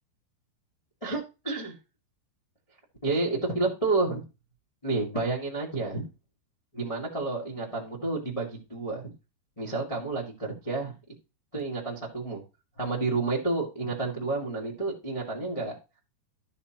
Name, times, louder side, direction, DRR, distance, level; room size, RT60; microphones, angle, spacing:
voice 1, 1.0-1.7 3.0-4.2 4.8-6.1 6.7-9.0 9.6-10.9 11.5-12.4 12.8-15.8, right 3 dB, 55° left, -3 dB, 0.3 m, -30 dB
13.5 x 6.5 x 2.9 m, 0.29 s
omnidirectional pair, 5.0 m